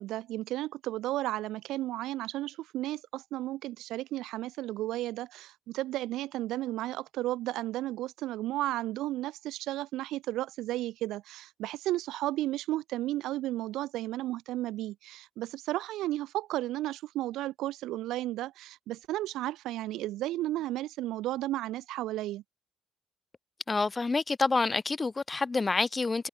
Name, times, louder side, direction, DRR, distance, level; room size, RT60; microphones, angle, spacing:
voice 1, 0.0-22.4, right 15 dB, 90° right, 6.4 m, -33 dB
voice 2, 23.7-26.3, left 3 dB, 25° left, 1.8 m, -28 dB
cardioid pair, 90°, 0 cm